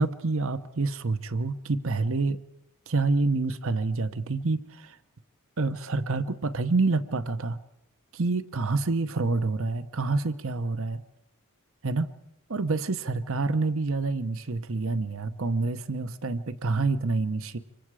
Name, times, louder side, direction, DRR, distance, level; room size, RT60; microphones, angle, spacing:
voice 1, 0.0-2.4 2.9-5.0 5.6-7.6 8.1-11.0 11.8-12.1 12.5-17.6, right 3 dB, 65° right, 12 dB, 1.0 m, -27 dB
27.0 x 25.0 x 4.9 m, 0.88 s
head